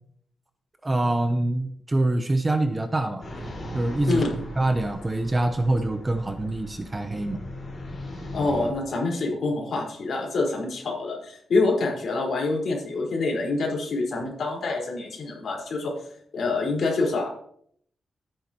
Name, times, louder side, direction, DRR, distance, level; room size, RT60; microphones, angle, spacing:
voice 1, 0.8-3.2 3.7-4.2 4.6-7.4, right 2 dB, 15° right, 8 dB, 0.8 m, -25 dB
sound 1, 3.2-8.7, left 1 dB, 30° left, 4.9 m, -38 dB
voice 2, 8.3-15.9 16.3-17.3, left 3 dB, 55° left, -1 dB, 4.7 m, -26 dB
13.5 x 10.0 x 3.0 m, 0.64 s
wide cardioid pair, 160°, 0 cm